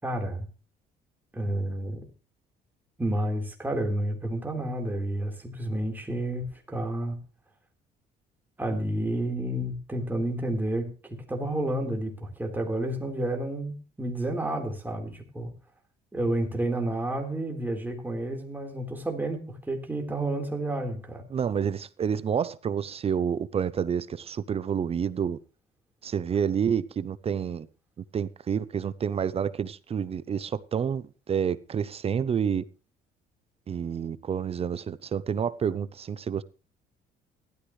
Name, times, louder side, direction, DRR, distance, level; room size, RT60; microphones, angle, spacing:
voice 1, 0.0-0.5 1.3-2.1 3.0-7.2 8.6-15.5 16.1-21.3, right 1 dB, 10° right, 4.1 m, -30 dB
voice 2, 21.3-25.4 26.0-27.7 28.1-32.6 33.7-36.4, right 7 dB, 35° right, 0.7 m, -29 dB
17.5 x 13.5 x 3.2 m
cardioid pair, 110°, 17 cm